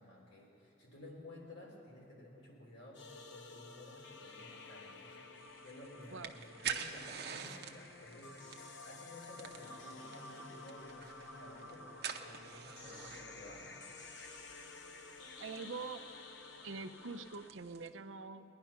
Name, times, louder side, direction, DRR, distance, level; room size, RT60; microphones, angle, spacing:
voice 1, 0.0-13.8, left 1 dB, 85° left, -2 dB, 3.4 m, -54 dB
sound 1, 2.9-17.5, left 3 dB, 65° left, 0.9 m, -52 dB
sound 2, 5.4-17.9, right 7 dB, 55° right, 0.8 m, -48 dB
voice 2, 15.4-16.0 16.6-18.4, right 4 dB, 90° right, 9 dB, 0.7 m, -44 dB
19.0 x 10.5 x 5.8 m, 2.8 s
head